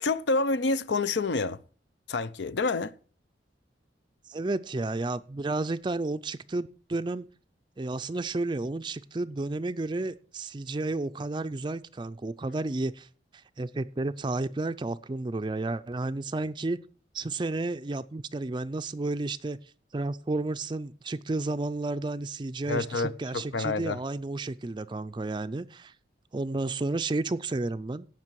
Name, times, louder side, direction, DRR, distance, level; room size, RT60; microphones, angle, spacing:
voice 1, 0.0-1.6 2.1-3.0 22.7-24.0, left 3 dB, 75° left, 0.6 m, -28 dB
voice 2, 4.3-7.3 7.8-13.1 13.3-16.8 17.1-19.6 19.9-25.9 26.3-28.1, right 2 dB, 25° right, 0.4 m, -32 dB
17.0 x 5.9 x 4.6 m
head